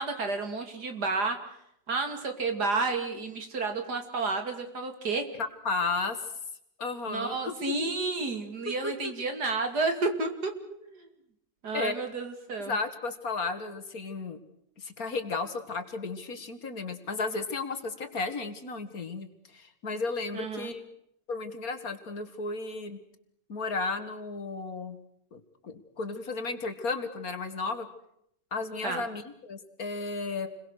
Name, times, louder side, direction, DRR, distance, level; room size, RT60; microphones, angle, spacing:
voice 1, 0.0-1.4 1.9-5.3 7.1-10.5 10.8-11.1 11.6-12.8 20.3-20.7 28.8-29.0, right 3 dB, 70° right, 6 dB, 3.0 m, -31 dB
voice 2, 5.4-6.2 6.8-7.5 8.8-9.1 11.7-11.9 12.7-14.4 14.8-19.3 19.5-20.9 21.3-23.0 23.5-25.0 25.3-27.9 28.5-30.5, left 3 dB, 55° left, 8 dB, 2.3 m, -34 dB
29.0 x 22.0 x 6.5 m, 0.75 s
omnidirectional pair, 1.8 m